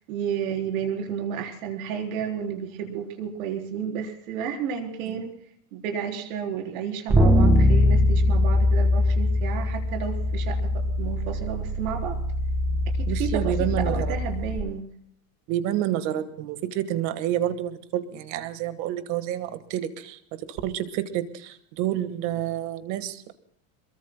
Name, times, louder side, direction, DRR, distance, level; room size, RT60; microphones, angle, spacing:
voice 1, 0.1-5.3 5.7-10.7 11.0-12.2 13.1-14.9, right 7 dB, 75° right, 2 dB, 4.1 m, -31 dB
sound 1, 7.1-14.6, left 1 dB, 5° right, 1.7 m, -22 dB
voice 2, 12.7-14.2 15.5-20.2 20.5-23.3, right 12 dB, 45° right, 10 dB, 1.6 m, -29 dB
27.0 x 22.5 x 2.2 m, 0.64 s
supercardioid pair, 165°, 42 cm